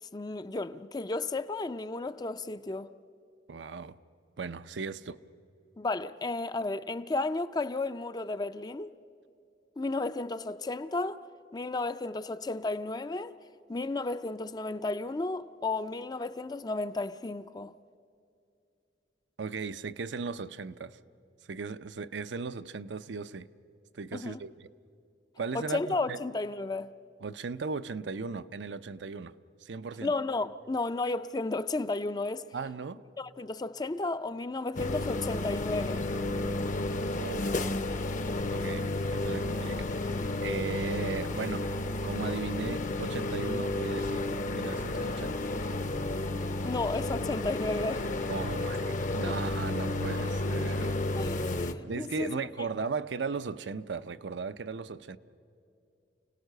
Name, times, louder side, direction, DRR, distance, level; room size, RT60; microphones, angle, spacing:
voice 1, 0.1-2.9 5.8-8.9 9.8-11.2 11.5-13.3 13.7-17.7 24.1-24.4 25.5-26.9 30.0-32.5 33.2-36.0 46.6-48.0 49.2-49.3 51.2-52.5, left 2 dB, 20° left, 0.4 m, -33 dB
voice 2, 3.5-3.9 4.4-5.2 19.4-21.0 21.5-23.5 23.9-24.7 25.4-26.2 27.2-29.3 29.6-30.1 32.5-33.0 37.2-37.6 38.5-39.9 40.4-41.7 42.0-45.5 48.3-51.2 51.8-55.2, right 4 dB, 80° right, 0.6 m, -37 dB
sound 1, 34.8-51.7, left 2 dB, 45° left, 0.8 m, -32 dB
29.5 x 17.5 x 6.6 m
head